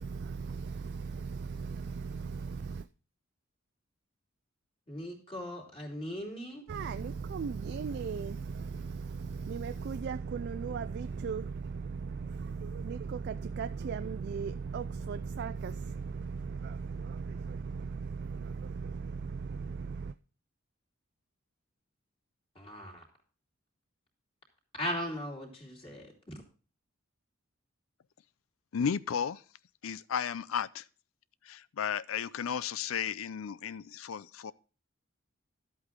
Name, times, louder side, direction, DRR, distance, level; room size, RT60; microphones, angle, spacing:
voice 1, 0.0-2.9 6.7-20.1, right 5 dB, 55° right, 0.4 m, -37 dB
voice 2, 4.9-6.6 22.5-23.0 24.8-26.1, equal, 30° left, 3.0 m, -38 dB
voice 3, 28.7-29.4 29.8-30.8 31.4-34.5, left 7 dB, 85° left, 0.5 m, -34 dB
11.5 x 8.2 x 3.6 m
head